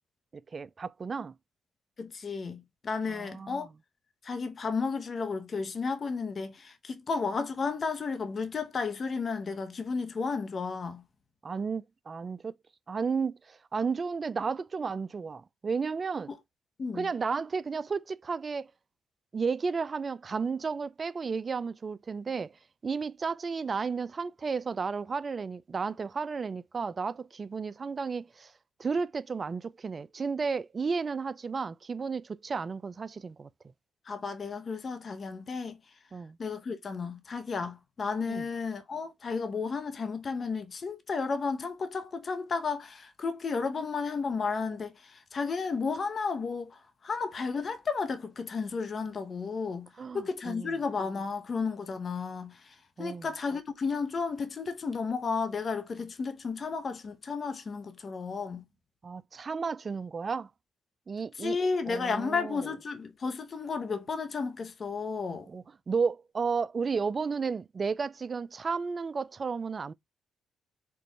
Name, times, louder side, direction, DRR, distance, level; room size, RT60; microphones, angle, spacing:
voice 1, 0.3-1.4 3.1-3.7 11.4-12.6 12.9-16.3 16.9-18.7 19.3-22.5 22.8-28.5 28.8-33.5 36.1-36.4 38.3-38.4 50.0-50.7 53.0-53.3 59.0-60.5 61.1-61.6 61.9-62.7 65.5-69.9, right 5 dB, 45° right, 0.4 m, -33 dB
voice 2, 2.0-3.7 4.2-11.0 16.3-16.4 16.8-17.1 34.1-35.8 36.4-49.9 50.1-58.6 61.4-65.5, left 4 dB, 50° left, 0.9 m, -33 dB
4.6 x 2.5 x 3.1 m
supercardioid pair, 50°, 0 cm